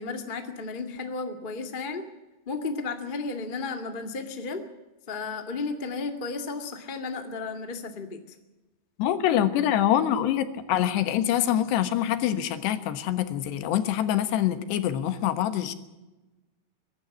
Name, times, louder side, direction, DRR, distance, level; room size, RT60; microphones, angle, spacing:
voice 1, 0.0-2.0 2.4-4.6 5.1-8.3, left 4 dB, 35° left, 6 dB, 0.8 m, -33 dB
voice 2, 9.0-15.7, left 11 dB, 85° left, 11 dB, 3.4 m, -25 dB
23.0 x 12.0 x 9.7 m, 1.1 s
omnidirectional pair, 4.8 m